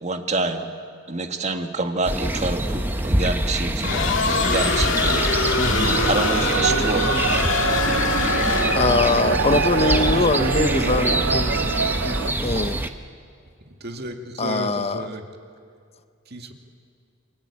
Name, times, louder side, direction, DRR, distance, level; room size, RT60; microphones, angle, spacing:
voice 1, 0.0-0.7 1.1-5.6 6.0-7.0 7.8-8.1 12.5-12.7, right 3 dB, 35° right, 1.8 m, -27 dB
sound 1, 2.0-12.9, right 1 dB, 10° right, 1.1 m, -25 dB
sound 2, 3.8-9.2, left 4 dB, 70° left, 2.1 m, -24 dB
sound 3, 5.0-12.3, right 6 dB, 70° right, 0.6 m, -26 dB
voice 2, 5.6-6.1 8.8-11.5 12.0-12.8 14.4-15.1, left 3 dB, 30° left, 0.7 m, -23 dB
voice 3, 9.7-11.7 13.7-15.2 16.3-16.5, right 1 dB, 55° right, 2.3 m, -32 dB
28.5 x 23.0 x 8.7 m
head